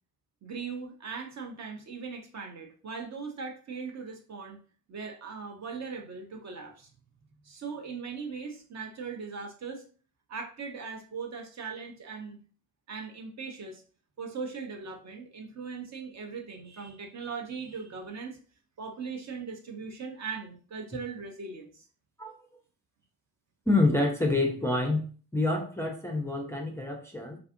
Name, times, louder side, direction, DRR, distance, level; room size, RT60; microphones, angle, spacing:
voice 1, 0.4-4.6 4.9-6.9 7.4-9.9 10.3-12.4 12.9-13.8 14.2-18.4 18.8-21.8, right 5 dB, 40° right, 3 dB, 0.7 m, -39 dB
voice 2, 23.7-25.0 25.3-27.4, left 2 dB, 5° left, 1 dB, 0.4 m, -27 dB
2.5 x 2.4 x 2.6 m, 0.40 s
hypercardioid pair, 50°, 41 cm